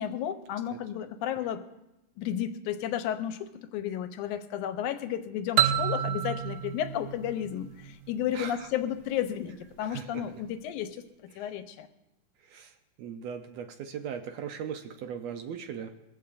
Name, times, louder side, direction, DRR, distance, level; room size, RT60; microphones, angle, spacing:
voice 1, 0.0-1.6 2.2-11.9, left 10 dB, 80° left, 9 dB, 2.1 m, -33 dB
sound 1, 5.6-8.3, right 10 dB, 90° right, 2.3 m, -29 dB
voice 2, 8.3-8.7 9.8-10.3 11.3-11.6 12.4-15.9, right 7 dB, 70° right, 6 dB, 1.7 m, -39 dB
22.5 x 15.5 x 2.5 m, 0.92 s
omnidirectional pair, 3.7 m